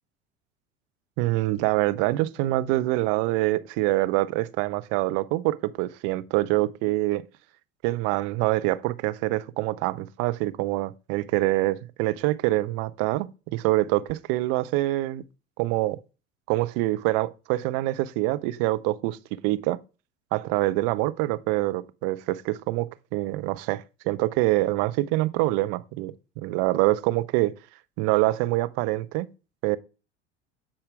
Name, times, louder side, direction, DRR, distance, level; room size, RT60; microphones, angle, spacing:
voice 1, 1.2-7.2 7.8-15.2 15.6-16.0 16.5-19.8 20.3-27.5 28.0-29.3 29.6-29.8, right 18 dB, 45° right, 0.6 m, -25 dB
7.5 x 4.3 x 4.7 m
figure-of-eight pair, 70°, 33 cm